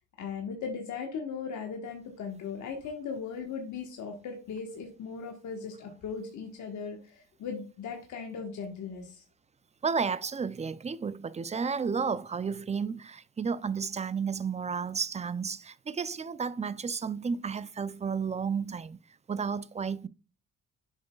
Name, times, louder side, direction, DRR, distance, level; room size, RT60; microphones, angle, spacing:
voice 1, 0.2-9.2, left 5 dB, 85° left, 1.3 m, -38 dB
voice 2, 9.8-19.0 19.3-20.1, right 6 dB, 25° right, 0.4 m, -32 dB
7.7 x 6.2 x 2.3 m
cardioid pair, 105°, 29 cm